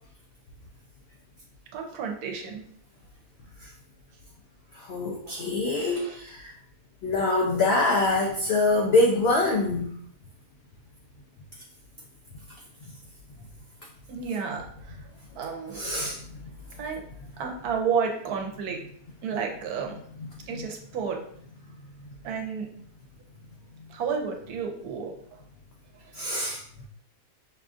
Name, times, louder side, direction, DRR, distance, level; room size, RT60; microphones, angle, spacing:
voice 1, 1.7-2.6 5.3-6.2 14.1-15.0 15.4-15.8 16.8-17.0 17.4-18.8 19.2-20.0 20.5-21.2 22.2-22.7 23.9-25.1 26.2-26.4, right 6 dB, 85° right, 2 dB, 1.2 m, -31 dB
voice 2, 4.7-6.5 7.0-9.9 15.7-16.4 20.2-20.7 26.1-26.6, left 2 dB, 70° left, -1 dB, 0.6 m, -25 dB
5.4 x 2.4 x 2.5 m, 0.63 s
omnidirectional pair, 1.6 m